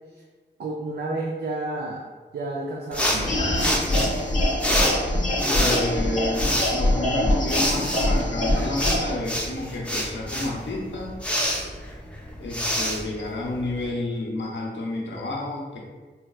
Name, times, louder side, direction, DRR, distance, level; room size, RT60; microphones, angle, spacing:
voice 1, 0.6-3.5, right 2 dB, 65° right, -2 dB, 0.4 m, -31 dB
sound 1, 2.9-13.9, equal, 5° left, 0.5 m, -28 dB
sound 2, 3.2-9.1, left 1 dB, 40° left, 0.7 m, -24 dB
voice 2, 5.4-11.2 12.4-15.8, left 2 dB, 85° left, -2 dB, 0.6 m, -30 dB
3.9 x 2.1 x 2.3 m, 1.4 s
wide cardioid pair, 65°, 19 cm